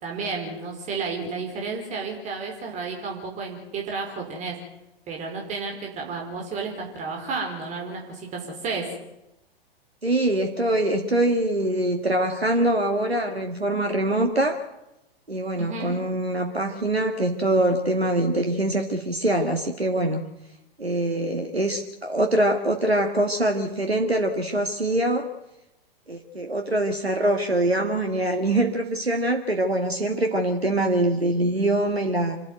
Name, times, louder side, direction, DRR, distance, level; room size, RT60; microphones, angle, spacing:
voice 1, 0.0-4.6 5.1-8.9 15.6-15.9, right 4 dB, 25° right, 1 dB, 4.9 m, -32 dB
voice 2, 10.0-14.6 15.3-20.2 20.8-25.3 26.1-32.4, right 1 dB, 85° right, 5 dB, 1.9 m, -24 dB
27.0 x 12.0 x 9.5 m, 0.90 s
figure-of-eight pair, 105°, 30 cm